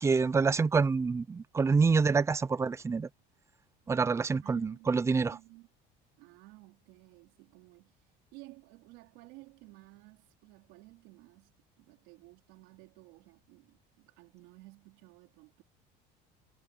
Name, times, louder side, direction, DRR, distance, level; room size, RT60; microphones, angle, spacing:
voice 1, 0.0-3.1 3.9-5.4, right 4 dB, 15° right, 0.6 m, -27 dB
voice 2, 4.4-5.7 6.2-15.6, right 22 dB, 85° right, 4.0 m, -55 dB
cardioid pair, 155°, 19 cm